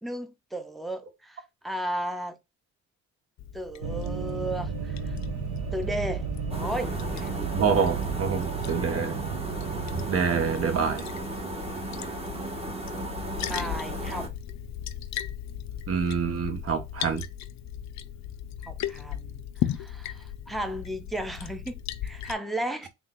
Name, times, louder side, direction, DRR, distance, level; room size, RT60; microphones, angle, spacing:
voice 1, 0.0-2.4 3.5-5.2 5.7-7.5 13.4-14.3 18.7-22.9, right 1 dB, ahead, 0.5 m, -35 dB
Liquid, 3.4-22.3, left 11 dB, 65° left, 0.5 m, -38 dB
sound 1, 3.8-11.0, right 5 dB, 75° right, 1.4 m, -33 dB
sound 2, 6.5-14.3, right 2 dB, 20° right, 1.3 m, -35 dB
voice 2, 7.5-9.2 10.1-11.1 15.9-17.2, right 6 dB, 50° right, 1.1 m, -26 dB
3.6 x 2.4 x 3.7 m
cardioid pair, 90°, 30 cm